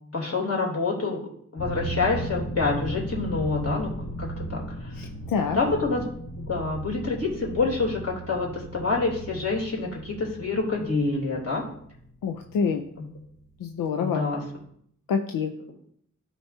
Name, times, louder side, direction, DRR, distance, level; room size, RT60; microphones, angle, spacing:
voice 1, 0.1-1.2 1.5-3.9 4.2-4.9 5.5-6.0 6.4-11.7 13.0-13.1 14.0-14.4, left 3 dB, 50° left, -2 dB, 3.0 m, -27 dB
sound 1, 1.6-12.9 13.2-13.3, right 2 dB, 65° left, 2.2 m, -37 dB
voice 2, 5.0-5.6 12.2-12.8 13.6-14.2 15.1-15.5, left 6 dB, 85° left, 4 dB, 0.6 m, -26 dB
12.0 x 4.6 x 2.7 m, 0.67 s
cardioid pair, 60°, 33 cm